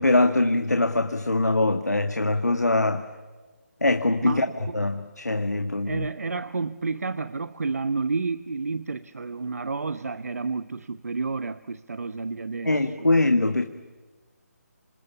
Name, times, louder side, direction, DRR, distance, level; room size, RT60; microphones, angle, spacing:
voice 1, 0.0-3.0 3.8-6.1 12.6-13.6, left 2 dB, 90° left, 1.8 m, -23 dB
voice 2, 5.8-13.1, right 4 dB, 65° right, 1.0 m, -30 dB
27.5 x 27.0 x 7.2 m
figure-of-eight pair, 155°, 9 cm